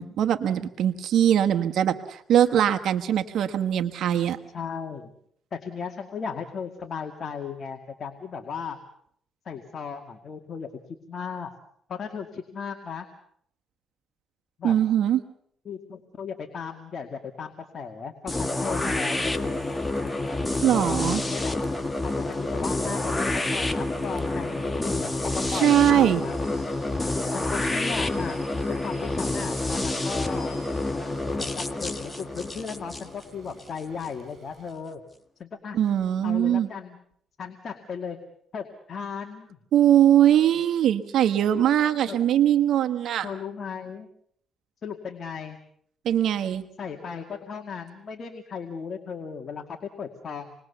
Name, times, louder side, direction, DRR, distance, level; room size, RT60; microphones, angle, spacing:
voice 1, 0.0-4.4 14.6-15.2 20.6-21.2 25.5-26.2 35.7-36.7 39.7-43.3 46.0-46.6, right 10 dB, 75° right, 6 dB, 1.3 m, -21 dB
voice 2, 4.5-5.1 5.5-8.8 9.5-11.5 11.9-13.1 14.6-14.8 15.7-19.6 20.7-21.6 22.0-26.5 27.3-28.4 28.6-30.6 31.4-35.0 35.4-35.8 36.2-37.0 37.4-38.2 38.5-39.6 42.1-42.2 43.2-44.1 44.8-45.6 46.8-50.5, left 6 dB, 50° left, 5 dB, 2.2 m, -36 dB
sound 1, 18.3-34.1, left 2 dB, 15° left, 1.9 m, -28 dB
Rain / Train, 19.2-34.7, right 4 dB, 45° right, 7.0 m, -53 dB
28.0 x 21.0 x 6.9 m, 0.68 s
cardioid pair, 90°, 0 cm